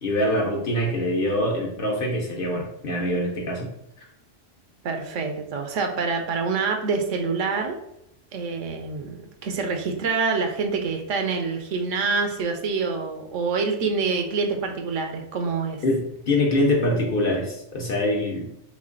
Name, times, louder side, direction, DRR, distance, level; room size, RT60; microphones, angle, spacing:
voice 1, 0.0-3.7 15.8-18.5, left 1 dB, 50° left, 0 dB, 0.9 m, -24 dB
voice 2, 4.8-7.8 8.3-15.8, right 4 dB, 75° right, 4 dB, 1.0 m, -26 dB
3.5 x 3.2 x 3.7 m, 0.80 s
omnidirectional pair, 1.3 m